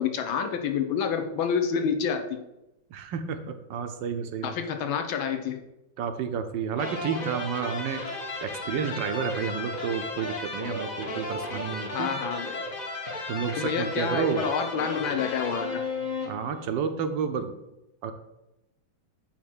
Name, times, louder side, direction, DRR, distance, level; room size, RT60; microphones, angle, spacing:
voice 1, 0.0-2.4 4.4-5.6 11.9-12.6 13.6-15.8, left 6 dB, 85° left, 6 dB, 1.6 m, -28 dB
voice 2, 2.9-4.5 6.0-8.0 8.4-12.1 13.3-14.4 16.2-17.5 18.0-18.1, right 7 dB, 75° right, 8 dB, 1.3 m, -30 dB
sound 1, 6.7-16.7, left 2 dB, 35° left, 0.7 m, -34 dB
8.8 x 3.0 x 6.0 m, 0.92 s
omnidirectional pair, 2.1 m